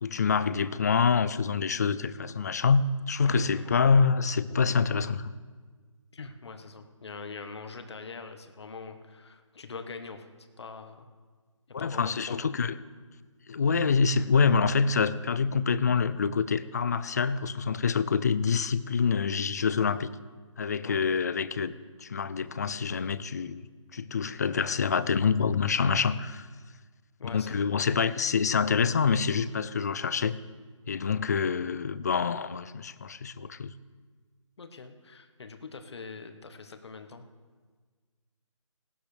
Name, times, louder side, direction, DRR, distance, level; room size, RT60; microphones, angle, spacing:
voice 1, 0.0-5.3 11.7-12.7 13.5-20.1 20.6-21.7 22.0-26.5 27.3-30.4 30.9-33.7, left 5 dB, 30° left, 14 dB, 0.4 m, -26 dB
voice 2, 3.3-4.0 6.1-11.1 11.7-12.5 20.8-21.0 27.2-27.7 34.6-37.2, left 4 dB, 55° left, 7 dB, 1.4 m, -43 dB
19.0 x 12.0 x 3.4 m, 1.5 s
figure-of-eight pair, 160°, 17 cm